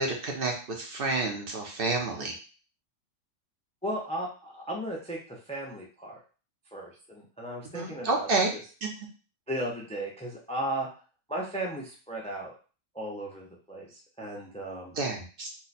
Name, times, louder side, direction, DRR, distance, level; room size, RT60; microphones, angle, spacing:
voice 1, 0.0-2.3 7.7-8.5 8.8-8.9 14.9-15.5, right 3 dB, 55° right, 1 dB, 0.8 m, -29 dB
voice 2, 3.8-6.2 6.7-8.6 9.5-10.9 11.3-12.5 12.9-14.9, right 1 dB, 10° left, -2 dB, 0.3 m, -35 dB
2.8 x 2.2 x 4.0 m, 0.37 s
omnidirectional pair, 1.2 m